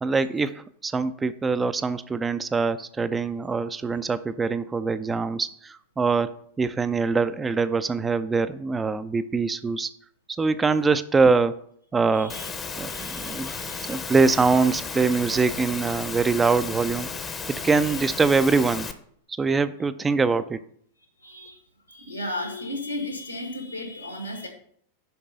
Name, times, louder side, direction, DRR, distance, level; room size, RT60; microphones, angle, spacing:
voice 1, 0.0-6.3 6.6-9.9 10.4-11.6 11.9-12.3 12.8-17.1 17.5-18.9 19.4-20.6, right 4 dB, 15° right, 13 dB, 0.4 m, -23 dB
voice 2, 12.1-12.5 12.8-14.0 21.0-21.6 21.9-24.5, left 1 dB, 85° left, 4 dB, 1.7 m, -35 dB
Engine / Mechanisms, 12.3-18.9, left 5 dB, 20° left, 0.7 m, -34 dB
6.8 x 5.2 x 5.3 m, 0.64 s
figure-of-eight pair, 90°, 0 cm